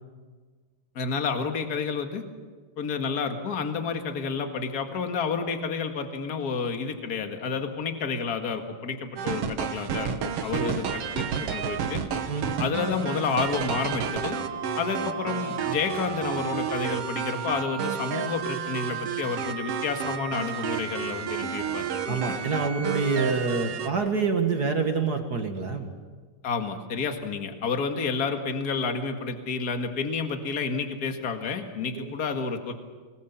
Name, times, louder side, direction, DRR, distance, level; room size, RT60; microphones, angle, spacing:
voice 1, 1.0-2.2 2.8-12.0 12.6-14.4 14.8-22.4 26.4-32.7, left 5 dB, 35° left, 5 dB, 1.8 m, -30 dB
sound 1, 9.2-23.9, right 7 dB, 60° right, 1.9 m, -31 dB
voice 2, 22.1-25.9 32.0-32.1, right 4 dB, 45° right, 5 dB, 1.4 m, -27 dB
25.5 x 20.5 x 7.2 m, 1.4 s
omnidirectional pair, 3.8 m